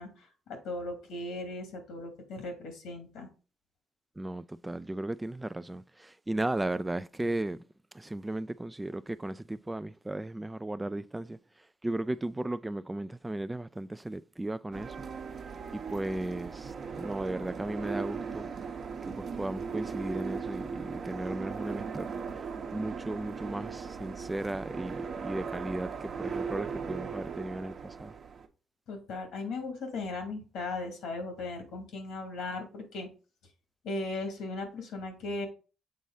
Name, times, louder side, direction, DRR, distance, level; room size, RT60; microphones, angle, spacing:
voice 1, 0.0-3.3 28.9-33.1 33.8-35.5, left 2 dB, 85° left, 2.3 m, -37 dB
voice 2, 4.2-7.6 7.9-11.4 11.8-15.0 15.7-18.5 19.1-22.1 22.7-28.1, right 1 dB, 15° right, 0.3 m, -35 dB
sound 1, 14.7-28.5, right 5 dB, 55° right, 1.0 m, -38 dB
7.5 x 4.1 x 3.9 m
cardioid pair, 90°, 0 cm